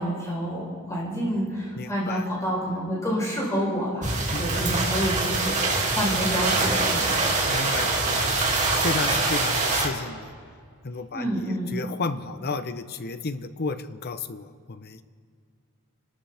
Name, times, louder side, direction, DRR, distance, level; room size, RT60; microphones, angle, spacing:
voice 1, 0.0-4.1 4.4-7.1 11.1-11.7, equal, 15° left, -4 dB, 4.2 m, -28 dB
voice 2, 1.8-2.2 4.3-4.6 7.5-8.5 8.8-10.3 10.8-15.0, left 4 dB, 45° left, 11 dB, 0.7 m, -32 dB
sound 1, 4.0-9.9, right 3 dB, 35° right, 2.5 m, -24 dB
30.0 x 13.0 x 3.4 m, 2.1 s
head